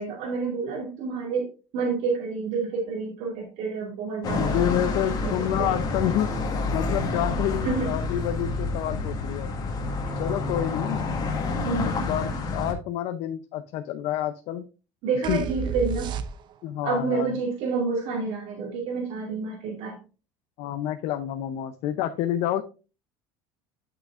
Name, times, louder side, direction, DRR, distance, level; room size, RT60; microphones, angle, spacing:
voice 1, 0.0-4.5 5.2-5.7 7.6-7.9 11.6-12.0 15.0-16.1 16.8-20.0, right 4 dB, 70° right, 0 dB, 2.2 m, -29 dB
sound 1, 4.2-12.7, left 3 dB, 35° left, 1.7 m, -28 dB
voice 2, 4.3-6.3 6.7-9.5 10.2-11.0 11.8-14.7 15.3-15.5 16.6-17.3 20.6-22.6, left 11 dB, 65° left, 9 dB, 0.7 m, -28 dB
sound 2, 15.2-16.8, right 7 dB, 40° right, 0.7 m, -31 dB
11.5 x 5.9 x 2.5 m, 0.33 s
cardioid pair, 145°, 11 cm